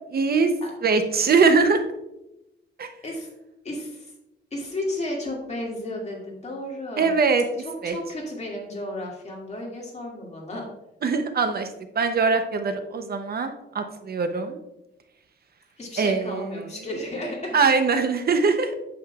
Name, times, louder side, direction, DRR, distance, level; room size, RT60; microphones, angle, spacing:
voice 1, 0.1-0.5 0.8-1.8 2.8-2.9 7.0-7.9 11.0-11.7 11.9-14.6 16.0-16.6 17.5-18.7, right 4 dB, 55° right, 7 dB, 0.6 m, -22 dB
voice 2, 3.6-4.1 4.5-7.1 7.6-10.7 15.8-17.6, left 1 dB, 35° left, -2 dB, 2.1 m, -33 dB
8.5 x 7.7 x 2.3 m, 0.92 s
wide cardioid pair, 135°, 19 cm